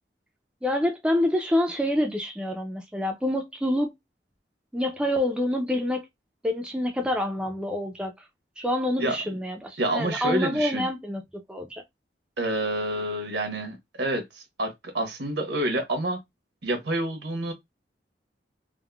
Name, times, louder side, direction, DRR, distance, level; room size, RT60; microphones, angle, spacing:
voice 1, 0.6-3.9 4.7-6.0 6.4-8.1 8.6-11.2 11.5-11.8, left 1 dB, 5° right, 0.4 m, -27 dB
voice 2, 9.0-9.4 9.8-10.9 12.4-16.2 16.6-17.5, right 1 dB, 80° right, 1.0 m, -28 dB
3.6 x 2.0 x 2.2 m
head